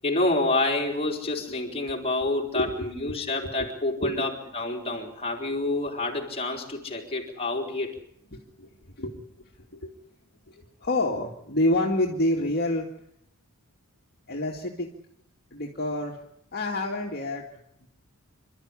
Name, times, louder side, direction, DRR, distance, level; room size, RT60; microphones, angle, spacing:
voice 1, 0.0-8.0, left 2 dB, 25° left, 1 dB, 4.2 m, -28 dB
voice 2, 2.5-2.9 3.4-3.5 4.0-4.2 8.3-8.7 9.0-9.9 10.5-12.9 14.3-14.9 15.5-16.2 16.5-17.4 17.8-17.9, left 1 dB, 45° left, -1 dB, 2.4 m, -28 dB
27.5 x 13.0 x 9.9 m, 0.72 s
head